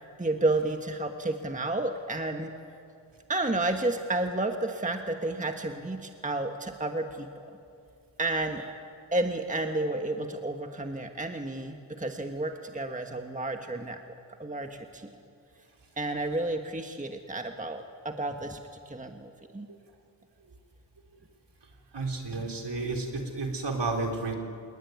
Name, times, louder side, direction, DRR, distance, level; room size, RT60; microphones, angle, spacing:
voice 1, 0.2-2.5 3.3-7.3 8.2-8.7 9.1-14.0 14.4-15.1 16.0-18.6 18.8-19.7, right 2 dB, 15° right, 5 dB, 1.5 m, -31 dB
voice 2, 21.9-24.3, right 3 dB, 55° right, 2 dB, 3.8 m, -31 dB
28.0 x 20.5 x 9.4 m, 2.4 s
wide cardioid pair, 90°, 48 cm